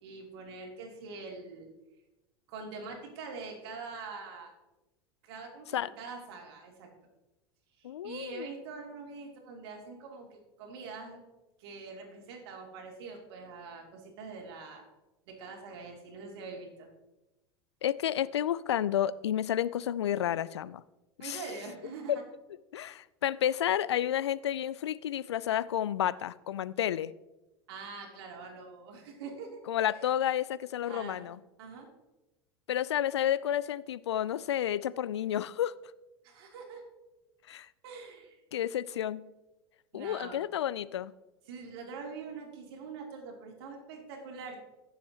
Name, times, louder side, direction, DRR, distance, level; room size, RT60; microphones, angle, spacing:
voice 1, 0.0-1.7 2.5-4.5 5.2-6.9 7.8-11.2 11.6-14.8 15.3-16.9 21.2-22.1 27.7-29.6 29.9-30.1 30.8-31.3 31.6-31.9 36.2-36.8 37.8-38.4 39.9-40.4 41.5-44.6, right 4 dB, 65° right, 1 dB, 2.7 m, -44 dB
voice 2, 7.8-8.5 17.8-20.8 21.2-21.4 22.1-22.2 22.7-27.1 29.7-31.4 32.7-35.7 37.5-37.7 38.5-39.2 39.9-41.1, left 11 dB, 85° left, 18 dB, 0.4 m, -31 dB
15.5 x 7.1 x 2.9 m, 1.0 s
hypercardioid pair, 95°, 14 cm